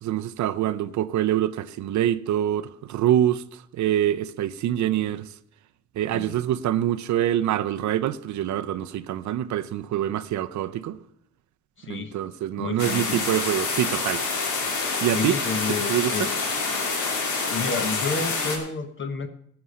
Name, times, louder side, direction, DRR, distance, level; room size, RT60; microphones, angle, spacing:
voice 1, 0.0-5.3 6.0-11.0 11.9-14.3 15.0-15.4 15.9-16.3, right 11 dB, 70° right, 0.6 m, -25 dB
voice 2, 11.8-12.1 12.6-13.3 15.1-16.3 17.5-19.3, left 4 dB, 40° left, 1.0 m, -30 dB
sound 1, 12.8-18.6, left 4 dB, 80° left, 2.6 m, -27 dB
13.0 x 7.0 x 6.4 m
cardioid pair, 90°, 30 cm